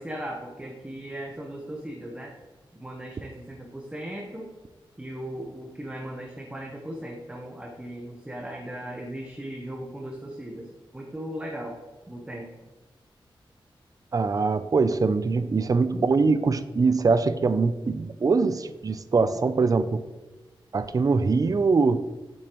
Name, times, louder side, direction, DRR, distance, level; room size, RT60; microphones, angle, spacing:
voice 1, 0.0-2.3 2.7-4.5 5.0-10.7 10.9-11.8 12.1-12.5, right 1 dB, 15° right, -1 dB, 0.9 m, -37 dB
voice 2, 14.1-20.0 20.7-22.0, right 4 dB, 40° right, 12 dB, 0.4 m, -23 dB
8.0 x 7.0 x 3.0 m, 1.2 s
wide cardioid pair, 115°, 9 cm